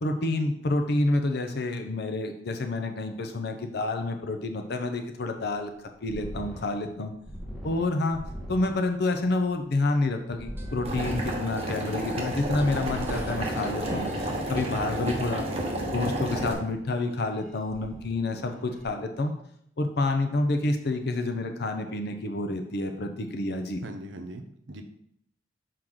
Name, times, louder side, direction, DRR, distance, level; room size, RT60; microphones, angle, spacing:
voice 1, 0.0-7.1 7.6-8.2 8.5-15.4 15.9-19.3 19.8-23.8, left 2 dB, 60° left, 5 dB, 0.6 m, -28 dB
sound 1, 5.6-14.3 16.3-17.4 17.7-18.8, equal, 5° left, 1.4 m, -40 dB
sound 2, 10.3-15.6, equal, 10° right, 0.8 m, -49 dB
Boiling, 10.8-16.5, right 1 dB, 35° right, 1.1 m, -31 dB
voice 2, 23.8-24.8, right 1 dB, 75° right, 6 dB, 0.8 m, -40 dB
6.1 x 4.7 x 3.7 m, 0.72 s
head